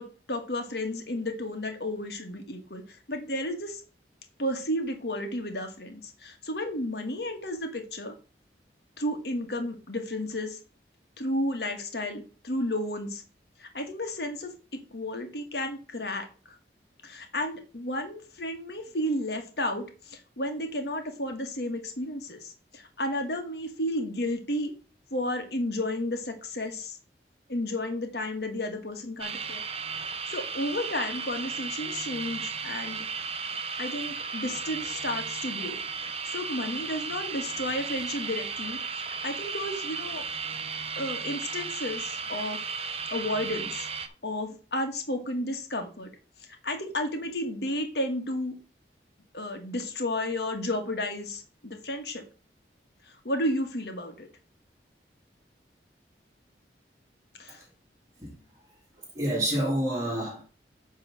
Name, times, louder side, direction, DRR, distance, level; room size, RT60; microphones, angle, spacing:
voice 1, 0.0-2.8 3.1-3.8 4.4-8.1 9.0-10.6 11.2-13.2 13.6-14.5 14.9-16.6 17.0-24.7 25.1-27.0 27.5-29.6 30.0-33.0 33.8-35.8 36.3-38.8 39.2-40.2 40.9-42.6 43.1-43.9 44.2-46.1 46.6-48.5 49.3-52.2 53.2-54.3 57.4-57.6, left 1 dB, 70° left, 1.7 m, -32 dB
sound 1, 29.2-44.1, right 5 dB, 35° right, 0.7 m, -35 dB
voice 2, 59.0-60.4, right 1 dB, 15° right, 2.6 m, -29 dB
9.0 x 3.7 x 6.4 m
head